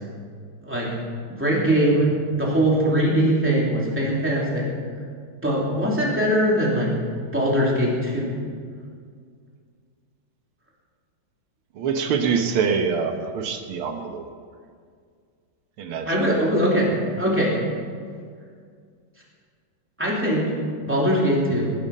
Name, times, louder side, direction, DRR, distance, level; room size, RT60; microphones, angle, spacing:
voice 1, 0.6-0.9 1.4-2.1 2.4-4.6 5.4-7.0 7.3-8.3 16.1-17.6 20.0-20.5 20.8-21.7, equal, 5° right, -4 dB, 3.1 m, -21 dB
voice 2, 11.8-14.2 15.8-16.3, right 6 dB, 90° right, 5 dB, 2.0 m, -25 dB
19.0 x 11.0 x 5.5 m, 2.1 s
omnidirectional pair, 2.3 m